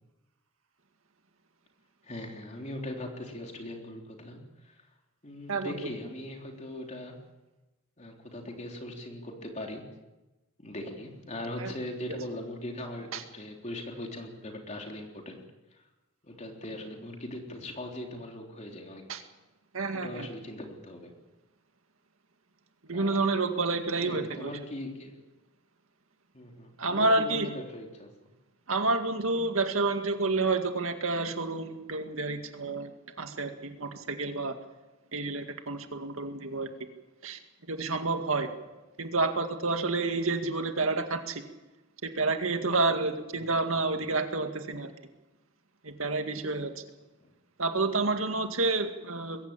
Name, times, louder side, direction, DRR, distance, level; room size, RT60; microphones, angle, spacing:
voice 1, 2.0-4.9 5.2-7.1 8.0-9.9 10.6-15.4 15.7-15.8 16.2-19.1 19.9-21.1 22.9-23.3 24.0-25.2 26.3-28.1 43.4-43.5 47.2-47.3, left 1 dB, 35° left, 1 dB, 3.6 m, -40 dB
voice 2, 19.7-20.3 22.8-24.5 26.8-27.5 28.7-32.9 33.2-34.6 35.1-36.7 37.2-37.4 37.7-38.5 39.0-41.4 42.0-44.9 45.8-46.8 47.6-49.4, right 3 dB, 80° right, 6 dB, 2.1 m, -29 dB
21.5 x 16.0 x 8.8 m, 1.1 s
head